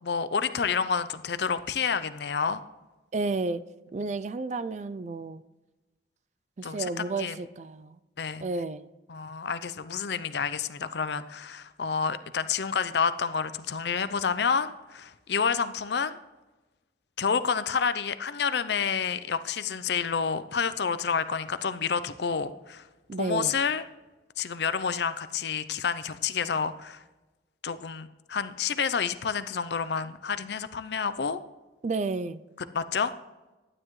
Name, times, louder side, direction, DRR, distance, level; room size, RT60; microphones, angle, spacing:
voice 1, 0.0-2.6 6.6-7.4 8.2-8.4 9.1-16.2 17.2-22.9 23.2-23.8 24.4-27.0 27.6-31.4 32.7-33.1, left 6 dB, 65° left, 13 dB, 0.5 m, -29 dB
voice 2, 3.1-3.6 3.9-5.4 6.6-8.0 8.4-8.9 23.1-23.5 31.8-32.4, right 3 dB, 40° right, 14 dB, 0.4 m, -31 dB
12.0 x 9.7 x 3.1 m, 1.1 s
head